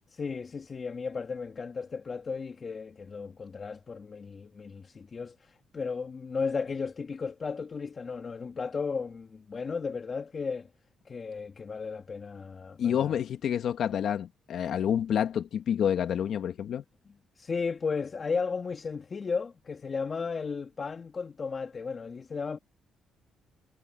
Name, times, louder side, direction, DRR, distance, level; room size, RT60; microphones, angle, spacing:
voice 1, 0.1-10.7 11.0-13.1 17.4-22.6, left 5 dB, 40° left, 2.5 m, -35 dB
voice 2, 12.8-16.8, left 9 dB, 65° left, 2.3 m, -28 dB
cardioid pair, 90°, 0 cm